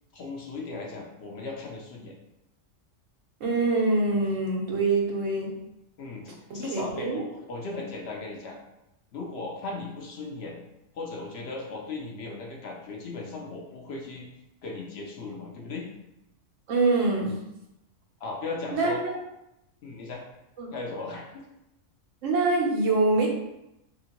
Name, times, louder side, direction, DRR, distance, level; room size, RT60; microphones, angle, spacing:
voice 1, 0.1-2.1 6.0-8.6 9.1-10.6 10.9-14.3 14.6-15.9 18.2-19.0 19.8-20.2 20.7-21.4, left 3 dB, 65° left, 0 dB, 0.7 m, -37 dB
voice 2, 3.4-5.5 6.5-7.2 16.7-17.3 18.7-18.9 20.6-20.7 22.2-23.3, right 3 dB, 75° right, -1 dB, 1.1 m, -24 dB
2.8 x 2.6 x 2.8 m, 0.88 s
omnidirectional pair, 1.4 m